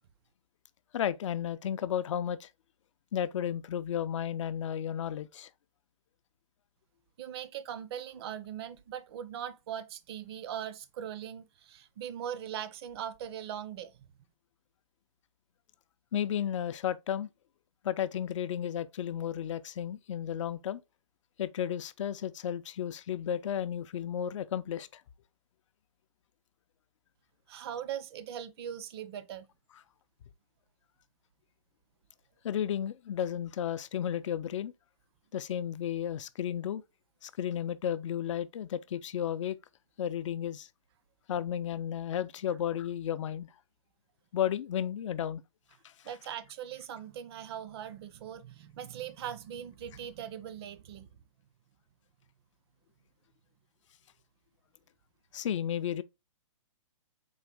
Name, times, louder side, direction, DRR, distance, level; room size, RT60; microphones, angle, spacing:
voice 1, 0.9-2.5 3.1-5.5 16.1-17.3 17.8-20.8 21.4-25.0 32.4-34.7 35.3-36.8 37.2-39.6 40.0-40.7 41.3-43.5 44.3-45.4 55.3-56.0, left 9 dB, 65° left, 0.4 m, -33 dB
voice 2, 7.2-14.1 27.5-29.5 46.0-51.1, right 9 dB, 50° right, 0.5 m, -40 dB
3.9 x 2.5 x 3.3 m
hypercardioid pair, 135°, 17 cm